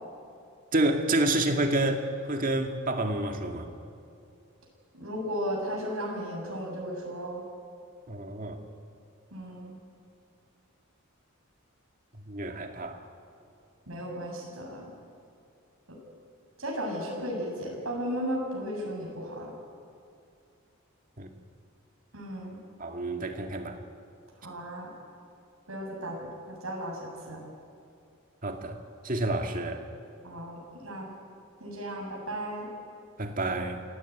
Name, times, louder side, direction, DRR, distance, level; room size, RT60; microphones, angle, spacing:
voice 1, 0.7-3.7 8.1-8.6 12.3-13.0 21.2-21.3 22.8-23.8 28.4-28.8 29.0-29.8 33.2-33.8, right 2 dB, 40° right, 4 dB, 2.1 m, -29 dB
voice 2, 4.9-7.4 9.3-9.8 13.9-14.9 15.9-16.0 16.6-19.5 22.1-22.6 24.4-24.9 25.7-26.2 26.5-27.4 30.2-31.1 31.6-32.7, equal, 90° right, -1 dB, 7.1 m, -35 dB
27.5 x 17.5 x 9.5 m, 2.5 s
head